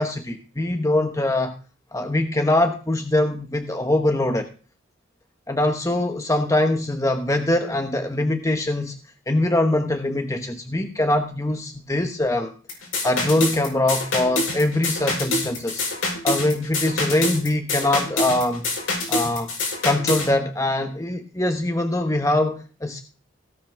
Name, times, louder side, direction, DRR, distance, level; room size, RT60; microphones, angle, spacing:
voice 1, 0.0-1.5 1.9-4.5 5.5-8.9 9.3-12.5 13.0-15.8 16.2-18.7 19.1-19.5 19.8-23.0, left 1 dB, 15° left, 5 dB, 1.0 m, -23 dB
sound 1, 12.7-20.3, left 2 dB, 75° left, 4.8 m, -26 dB
17.0 x 5.8 x 5.8 m, 0.36 s
head